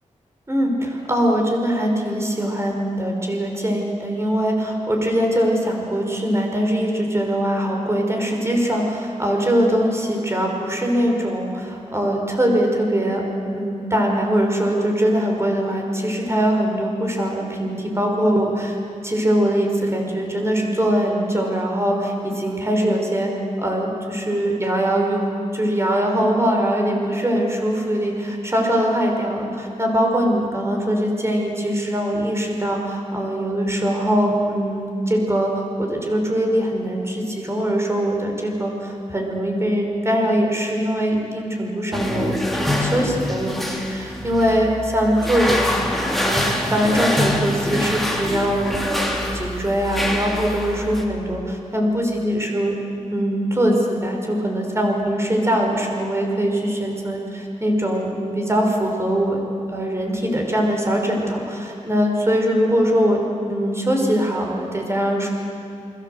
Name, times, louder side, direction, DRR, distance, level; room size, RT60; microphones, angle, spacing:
voice 1, 0.5-13.2 13.5-18.8 19.0-23.3 23.6-49.1 49.3-52.8 53.1-59.4 59.7-63.2 63.5-65.3, equal, 20° right, 1 dB, 5.4 m, -22 dB
sound 1, 41.9-51.0, left 1 dB, ahead, 3.2 m, -25 dB
29.5 x 21.5 x 8.0 m, 2.8 s
wide cardioid pair, 105°, 13 cm